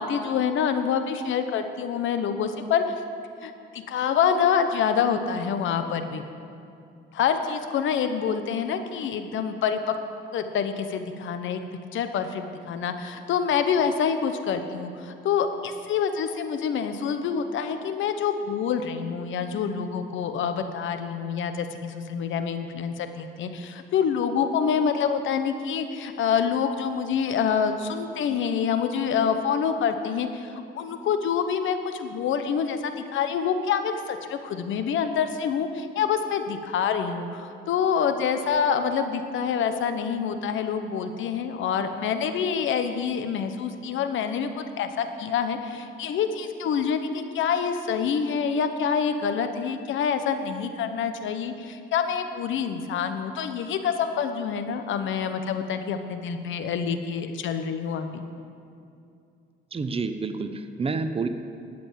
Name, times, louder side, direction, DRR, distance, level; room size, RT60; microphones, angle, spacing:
voice 1, 0.0-2.9 3.4-6.2 7.1-9.8 10.3-11.6 11.9-58.2, left 7 dB, 75° left, 8 dB, 1.0 m, -26 dB
voice 2, 59.7-61.3, right 4 dB, 30° right, 9 dB, 0.8 m, -29 dB
11.5 x 7.9 x 7.5 m, 2.5 s
cardioid pair, 90°, 20 cm